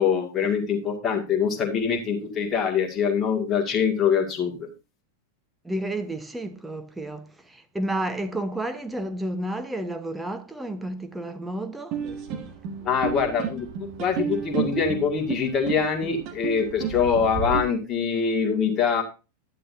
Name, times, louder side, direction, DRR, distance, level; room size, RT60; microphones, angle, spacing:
voice 1, 0.0-4.7 12.8-13.7 14.0-19.0, left 6 dB, 25° left, 2.0 m, -24 dB
voice 2, 5.6-12.0, right 1 dB, 5° right, 1.0 m, -31 dB
sound 1, 11.9-17.6, right 7 dB, 40° right, 1.5 m, -32 dB
11.0 x 9.9 x 2.6 m
figure-of-eight pair, 90°, 0 cm